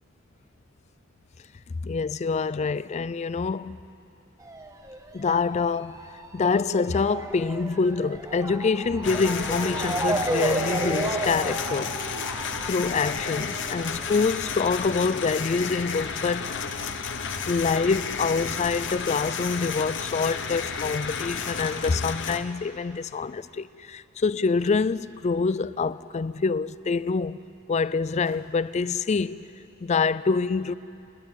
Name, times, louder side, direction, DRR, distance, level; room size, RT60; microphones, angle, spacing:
voice 1, 1.8-3.8 5.1-5.9 6.3-12.0 12.2-12.4 12.7-16.6 17.5-27.4 27.7-29.4 29.8-30.7, left 4 dB, 35° left, 0.4 m, -26 dB
Motor vehicle (road) / Siren, 4.4-17.4 17.7-18.9 19.5-19.6 19.8-19.9, right 2 dB, 15° right, 1.2 m, -34 dB
sound 1, 9.0-22.4, left 6 dB, 60° left, 1.0 m, -32 dB
sound 2, 20.7-21.5 22.4-22.5 23.3-23.6 24.6-25.1 26.4-26.5 27.1-27.2 28.2-28.8, right 2 dB, 80° right, 3.0 m, -55 dB
28.5 x 11.0 x 9.0 m
head